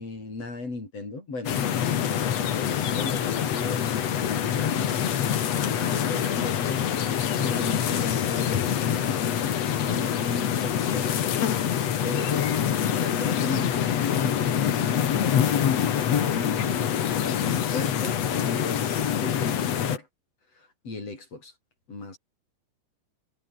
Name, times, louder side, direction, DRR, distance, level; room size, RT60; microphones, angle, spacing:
voice 1, 0.0-1.6 2.0-9.3 9.8-11.2 12.0-13.9 14.2-20.1 20.5-21.5 21.9-22.2, left 3 dB, 30° left, 7.8 m, -37 dB
sound 1, 1.4-20.0, left 9 dB, 90° left, 1.4 m, -25 dB
omnidirectional pair, 5.9 m